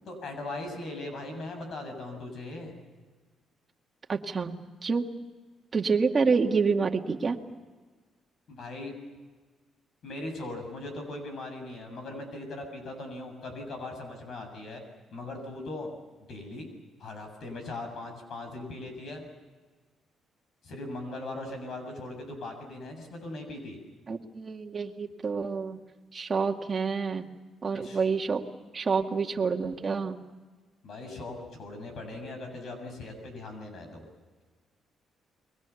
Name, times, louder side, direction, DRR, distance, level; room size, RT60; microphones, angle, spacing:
voice 1, 0.1-2.7 8.5-8.9 10.0-14.8 15.1-15.9 16.3-16.7 17.0-19.2 20.6-23.8 27.7-28.0 30.8-34.0, left 2 dB, 65° left, 5 dB, 7.5 m, -39 dB
voice 2, 4.1-4.5 4.8-5.1 5.7-7.4 24.1-25.8 26.1-27.3 27.6-28.4 28.7-30.2, right 5 dB, 35° right, 3 dB, 2.1 m, -27 dB
29.5 x 22.0 x 7.1 m, 1.4 s
cardioid pair, 90°, 0 cm